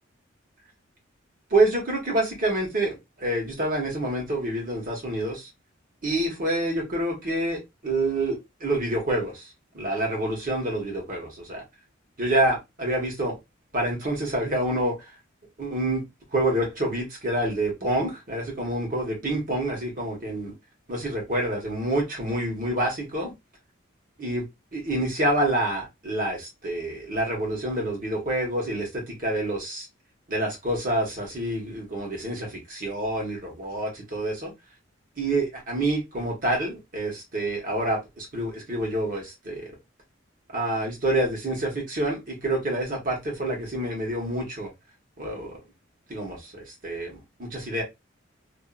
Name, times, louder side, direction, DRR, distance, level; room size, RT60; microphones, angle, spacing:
voice 1, 1.5-5.5 6.0-9.5 9.7-11.6 12.2-13.3 13.7-14.9 15.6-16.0 16.3-20.5 20.9-23.3 24.2-24.4 24.7-29.8 30.3-34.5 35.2-39.7 40.5-44.7 45.2-45.6 46.1-47.8, right 1 dB, 45° right, 1.1 m, -27 dB
2.5 x 2.4 x 2.4 m
head